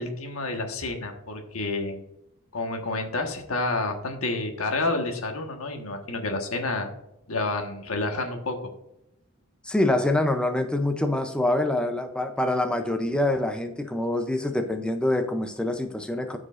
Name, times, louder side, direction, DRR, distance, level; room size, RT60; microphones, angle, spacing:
voice 1, 0.0-2.0 2.5-6.9 7.3-8.7, left 2 dB, 80° left, 4 dB, 1.3 m, -29 dB
voice 2, 9.6-16.4, left 1 dB, 5° left, 5 dB, 0.5 m, -25 dB
13.5 x 4.9 x 2.5 m, 0.83 s
head